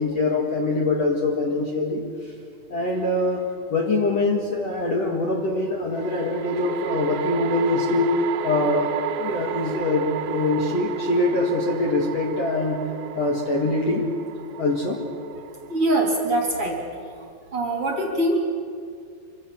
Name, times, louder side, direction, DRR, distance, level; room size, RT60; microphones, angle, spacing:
voice 1, 0.0-2.0 2.7-8.1 8.4-8.9 9.2-12.8 13.1-14.1 14.6-15.0, left 2 dB, 45° left, -1 dB, 2.5 m, -23 dB
sound 1, 3.0-3.1 5.9-17.3, right 9 dB, 80° right, 3.1 m, -33 dB
voice 2, 15.7-16.8 17.5-18.4, right 1 dB, 35° right, 0 dB, 3.3 m, -23 dB
26.0 x 25.0 x 7.4 m, 2.3 s
omnidirectional pair, 5.1 m